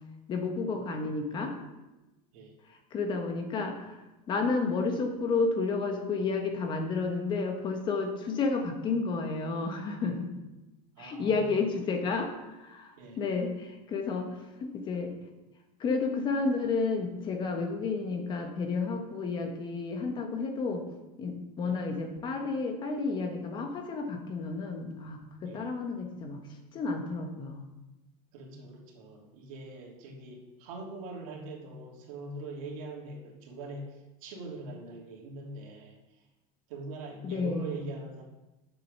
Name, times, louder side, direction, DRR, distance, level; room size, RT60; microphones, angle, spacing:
voice 1, 0.3-1.5 2.7-10.3 11.0-15.1 15.8-20.8 21.2-26.4 26.7-27.7 37.2-37.8, left 4 dB, 25° left, 5 dB, 1.3 m, -31 dB
voice 2, 11.0-11.5 13.0-13.2 21.6-21.8 25.4-25.7 28.3-35.9 36.7-38.2, right 2 dB, 65° right, -1 dB, 3.0 m, -42 dB
7.7 x 7.7 x 6.7 m, 1.0 s
supercardioid pair, 170°, 19 cm